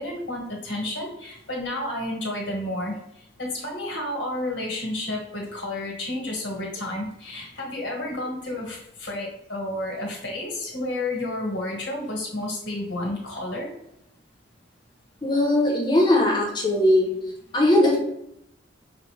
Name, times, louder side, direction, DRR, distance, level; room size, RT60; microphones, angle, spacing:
voice 1, 0.0-3.0 3.4-13.7, left 1 dB, 65° left, -2 dB, 1.6 m, -31 dB
voice 2, 15.2-17.1 17.5-18.0, left 1 dB, 25° left, -1 dB, 1.0 m, -19 dB
6.2 x 2.5 x 3.2 m, 0.76 s
head